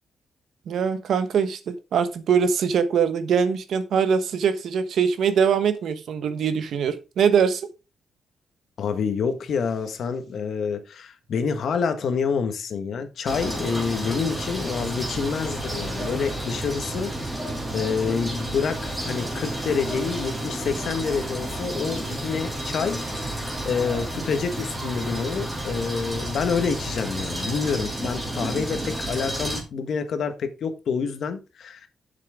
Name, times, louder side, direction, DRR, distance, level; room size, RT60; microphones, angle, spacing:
voice 1, 0.7-7.7, right 6 dB, 70° right, 1.2 m, -22 dB
voice 2, 8.8-17.3 17.7-23.0 23.4-31.9, left 6 dB, 60° left, 1.4 m, -27 dB
sound 1, 13.3-29.6, right 1 dB, 10° right, 2.6 m, -31 dB
10.5 x 7.5 x 3.6 m
wide cardioid pair, 165°, 0 cm